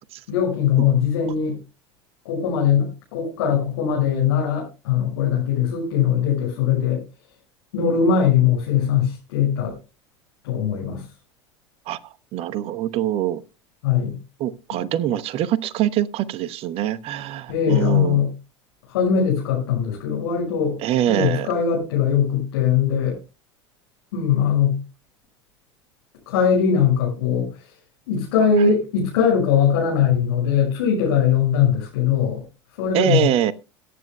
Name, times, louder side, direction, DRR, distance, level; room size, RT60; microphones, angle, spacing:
voice 1, 0.3-1.6 2.2-7.0 7.7-9.7 10.4-11.0 13.8-14.2 17.5-18.3 18.9-20.8 21.1-23.2 24.1-24.8 26.3-27.7 28.1-32.4 32.8-33.3, left 7 dB, 60° left, 6.2 m, -20 dB
voice 2, 12.3-13.4 14.4-18.2 20.8-21.5 32.9-33.5, right 11 dB, 40° right, 0.9 m, -23 dB
22.5 x 9.6 x 2.2 m
figure-of-eight pair, 75°, 15 cm